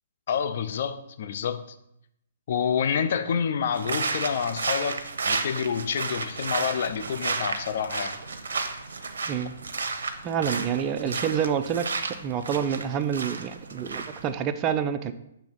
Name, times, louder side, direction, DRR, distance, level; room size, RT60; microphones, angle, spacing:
voice 1, 0.3-1.7 2.5-8.2 11.0-11.2, left 7 dB, 55° left, 11 dB, 0.6 m, -28 dB
sound 1, 3.7-14.3, right 4 dB, 80° right, 0.8 m, -32 dB
voice 2, 10.2-11.9 12.2-15.1, right 8 dB, 25° right, 9 dB, 0.5 m, -27 dB
6.9 x 3.5 x 5.8 m, 0.79 s
hypercardioid pair, 145°, 0 cm